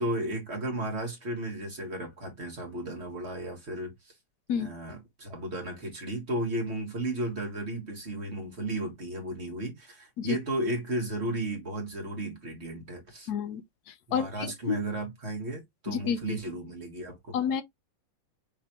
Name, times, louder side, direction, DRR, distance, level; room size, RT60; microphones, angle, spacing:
voice 1, 0.0-3.9 4.5-13.3 14.1-17.4, right 1 dB, 40° right, 1.7 m, -34 dB
voice 2, 13.3-13.6 13.9-14.8 15.9-16.4 17.3-17.6, left 7 dB, 65° left, 1.1 m, -30 dB
5.3 x 3.3 x 2.8 m
omnidirectional pair, 2.0 m